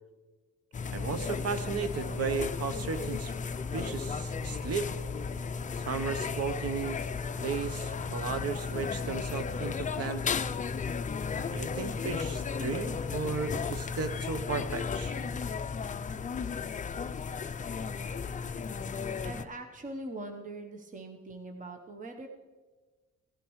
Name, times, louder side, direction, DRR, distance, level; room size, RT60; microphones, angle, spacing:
sound 1, 0.7-19.5, left 5 dB, 25° left, 0.4 m, -34 dB
voice 1, 0.9-3.3 3.7-4.9 5.9-7.0 7.4-10.4 11.5-15.1, right 5 dB, 50° right, 10 dB, 1.0 m, -34 dB
sound 2, 1.5-18.0, left 2 dB, 5° left, 1.6 m, -50 dB
voice 2, 19.2-22.3, right 2 dB, 25° right, 5 dB, 1.0 m, -42 dB
16.5 x 10.5 x 3.2 m, 1.3 s
cardioid pair, 90°, 30 cm